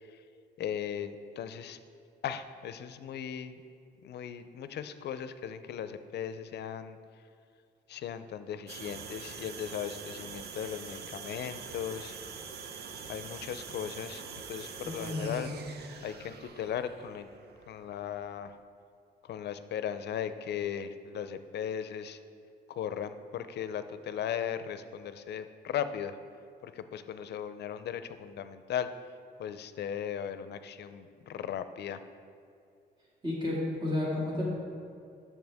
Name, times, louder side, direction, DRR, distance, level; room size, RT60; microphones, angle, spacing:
voice 1, 0.6-1.8 2.2-3.6 4.0-7.0 7.9-12.1 13.1-14.2 14.5-15.5 16.0-17.3 17.7-18.5 19.3-22.2 22.7-26.1 26.6-28.9 29.4-32.0, left 9 dB, 70° left, 11 dB, 0.5 m, -37 dB
sound 1, 8.7-18.5, right 6 dB, 65° right, 0.7 m, -45 dB
voice 2, 14.8-15.5 33.2-34.4, left 2 dB, 25° right, -5 dB, 2.0 m, -32 dB
10.5 x 6.9 x 3.5 m, 2.4 s
cardioid pair, 105°, 18 cm